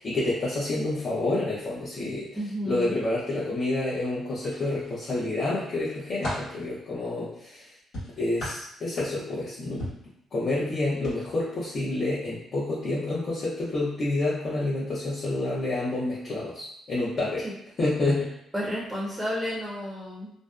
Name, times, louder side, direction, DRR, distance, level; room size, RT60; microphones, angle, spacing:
voice 1, 0.0-7.7 8.2-9.8 10.3-17.5 17.8-18.3, left 2 dB, 45° left, -9 dB, 0.7 m, -28 dB
voice 2, 2.3-3.0 18.5-20.3, equal, 10° right, -6 dB, 0.6 m, -31 dB
sound 1, 4.4-5.2 5.7-6.6 7.9-9.4 9.8-10.1 10.9-11.1 11.5-11.7, left 1 dB, 80° left, 1.1 m, -36 dB
2.6 x 2.0 x 2.3 m, 0.77 s
cardioid pair, 90°, 0 cm